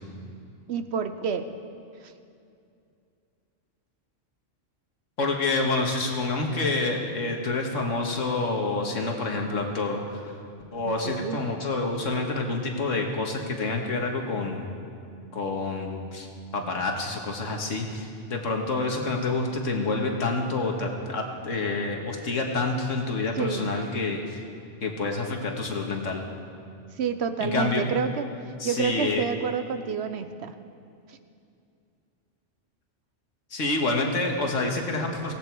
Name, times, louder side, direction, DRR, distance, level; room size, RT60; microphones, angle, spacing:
voice 1, 0.7-1.5 10.8-11.4 23.4-23.8 27.0-28.3 28.6-30.5, right 6 dB, 65° right, 10 dB, 1.0 m, -29 dB
voice 2, 5.2-10.3 10.7-14.7 15.3-16.3 16.5-24.4 24.8-26.2 27.4-27.9 28.6-29.2 33.5-35.3, left 3 dB, 85° left, 2 dB, 1.9 m, -28 dB
17.0 x 16.0 x 4.7 m, 2.5 s
omnidirectional pair, 1.3 m